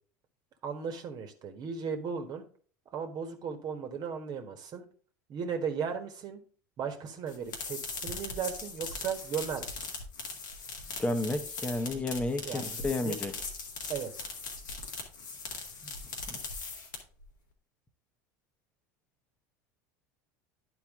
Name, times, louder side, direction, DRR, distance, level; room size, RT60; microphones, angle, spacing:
voice 1, 0.6-2.5 2.9-4.9 5.3-6.4 6.8-9.7 12.4-13.2 13.9-14.1, right 6 dB, 45° right, 1.5 m, -36 dB
sound 1, 7.3-17.2, left 4 dB, 90° left, 1.7 m, -40 dB
voice 2, 11.0-13.3 15.8-15.9, left 2 dB, 15° left, 1.1 m, -31 dB
10.5 x 4.5 x 3.7 m
hypercardioid pair, 85°, 10 cm